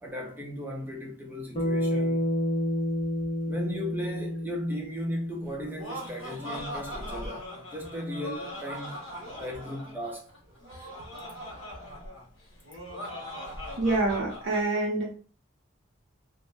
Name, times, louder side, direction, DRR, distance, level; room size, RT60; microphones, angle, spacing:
voice 1, 0.0-2.3 3.5-9.0 9.4-10.3, equal, 10° right, 0.6 m, -36 dB
Bass guitar, 1.6-5.9, left 1 dB, 30° left, 0.7 m, -30 dB
Laughter, 5.5-14.6, equal, 65° left, 1.3 m, -40 dB
voice 2, 13.8-15.1, right 2 dB, 65° right, 0.6 m, -26 dB
2.6 x 2.0 x 3.3 m
head